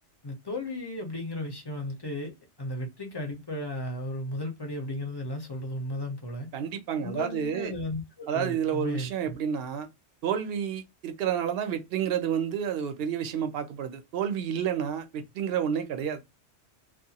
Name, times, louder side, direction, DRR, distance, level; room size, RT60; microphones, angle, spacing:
voice 1, 0.2-6.5 7.0-9.4, left 1 dB, 30° left, 0.5 m, -35 dB
voice 2, 6.5-7.7 8.3-9.9 10.2-16.2, right 8 dB, 65° right, 0.7 m, -30 dB
2.4 x 2.2 x 2.7 m
omnidirectional pair, 1.2 m